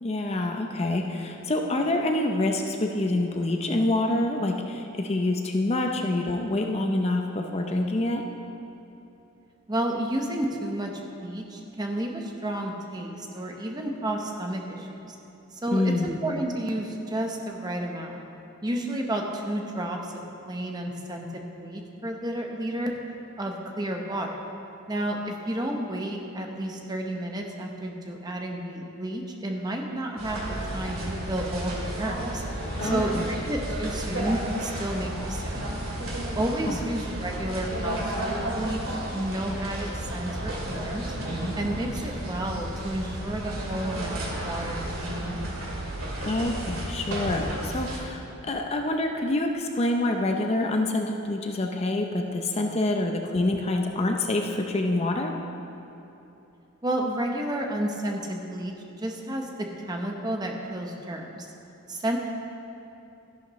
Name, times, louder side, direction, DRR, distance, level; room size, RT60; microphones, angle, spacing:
voice 1, 0.0-8.2 15.7-16.2 32.8-33.4 36.7-36.8 46.2-55.3, left 2 dB, 30° left, 3 dB, 0.6 m, -26 dB
voice 2, 9.7-15.2 15.5-18.2 18.6-20.1 20.5-23.0 23.4-24.4 24.9-30.4 30.7-31.0 31.3-32.4 32.8-35.5 36.3-41.1 41.6-45.4 56.8-61.5 61.9-62.2, right 1 dB, 20° right, 1 dB, 0.9 m, -31 dB
sound 1, 30.2-48.0, right 1 dB, 85° right, 2.3 m, -32 dB
13.0 x 11.0 x 3.1 m, 3.0 s
head